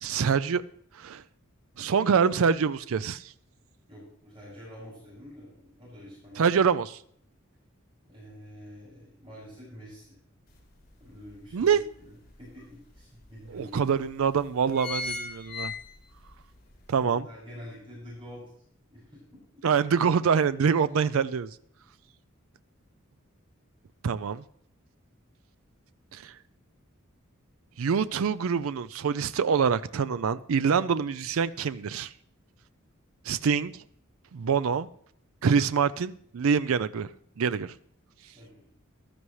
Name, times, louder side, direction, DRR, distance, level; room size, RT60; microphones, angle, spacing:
voice 1, 0.0-0.6 1.0-1.2 1.8-3.2 6.4-7.0 11.5-11.8 13.5-15.7 16.9-17.3 19.6-21.5 24.0-24.4 26.1-26.3 27.8-32.1 33.3-33.7 34.3-34.9 35.4-37.1 37.4-37.7, right 6 dB, 80° right, 0.4 m, -25 dB
voice 2, 3.9-6.5 8.0-10.2 11.0-12.1 12.4-13.9 17.0-18.5 18.9-19.4 38.3-38.7, equal, 25° right, 6.8 m, -47 dB
sound 1, 10.5-10.6 11.1-12.3 12.9-13.0 13.2-13.3 14.0-14.2 14.5-16.3 16.7-16.8, left 4 dB, 50° left, 3.4 m, -36 dB
15.0 x 12.5 x 3.2 m
head